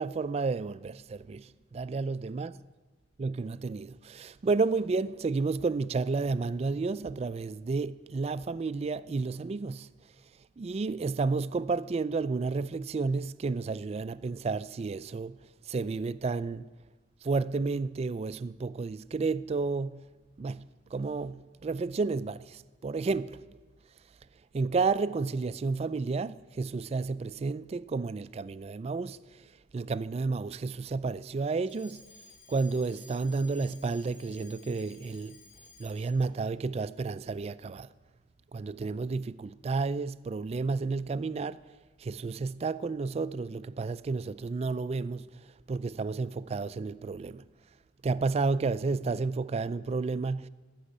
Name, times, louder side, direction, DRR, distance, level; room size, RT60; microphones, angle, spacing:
voice 1, 0.0-2.6 3.2-9.9 10.6-15.4 15.7-16.7 17.2-20.1 20.4-23.4 24.5-29.5 29.7-32.1 32.5-35.4 35.8-37.9 38.5-41.6 42.0-45.3 45.7-47.4 48.0-50.5, right 4 dB, 35° right, 0.3 m, -31 dB
Alarm, 31.6-36.3, left 3 dB, 45° left, 1.4 m, -55 dB
14.5 x 6.3 x 10.0 m
head